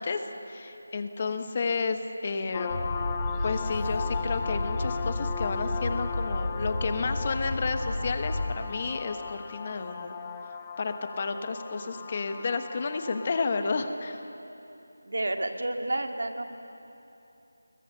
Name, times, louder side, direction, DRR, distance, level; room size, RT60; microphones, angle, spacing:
voice 1, 0.0-2.9 3.4-10.2 10.8-14.2, left 4 dB, 30° left, 8 dB, 1.2 m, -31 dB
sound 1, 2.5-13.9, left 6 dB, 15° left, 0.7 m, -38 dB
sound 2, 2.7-8.6, left 1 dB, 80° left, 3.5 m, -32 dB
voice 2, 11.7-12.1 15.1-16.4, right 1 dB, 70° right, 5 dB, 2.0 m, -31 dB
29.0 x 21.5 x 6.8 m, 2.9 s
figure-of-eight pair, 170°, 0 cm